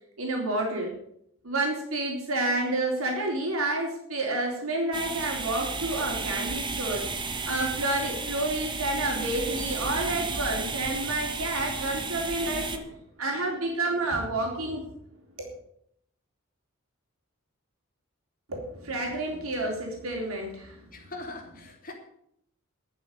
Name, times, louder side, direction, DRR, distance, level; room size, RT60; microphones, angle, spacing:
voice 1, 0.2-1.0 1.4-7.1 7.5-12.9 13.2-14.8 15.4-15.5 18.5-20.8, right 2 dB, 85° right, 0 dB, 3.7 m, -29 dB
sound 1, 4.9-12.8, right 4 dB, 25° right, 1.3 m, -33 dB
voice 2, 20.9-21.9, left 2 dB, 40° left, 2 dB, 3.1 m, -41 dB
12.0 x 7.3 x 9.9 m, 0.72 s
head